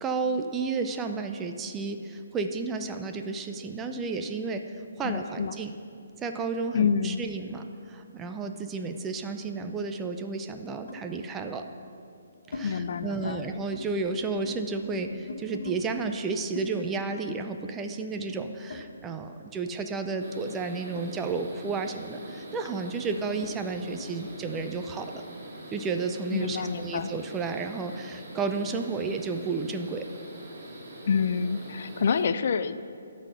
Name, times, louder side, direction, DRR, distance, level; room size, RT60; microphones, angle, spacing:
voice 1, 0.0-4.6 5.0-5.7 6.2-11.6 12.5-25.2 25.7-30.0, right 4 dB, 10° right, 6 dB, 0.4 m, -32 dB
voice 2, 5.0-5.6 6.7-7.2 12.6-13.5 26.3-27.1 31.1-32.8, left 6 dB, 55° left, 12 dB, 0.4 m, -27 dB
sound 1, 8.0-9.6 10.9-11.1 11.9-12.7 13.0-13.4 13.6-15.8 16.5-19.4 19.7-24.7, left 3 dB, 70° left, 0.9 m, -45 dB
sound 2, 20.2-32.2, equal, 50° right, 2.2 m, -44 dB
12.0 x 4.1 x 6.6 m, 2.4 s
hypercardioid pair, 160°, 0 cm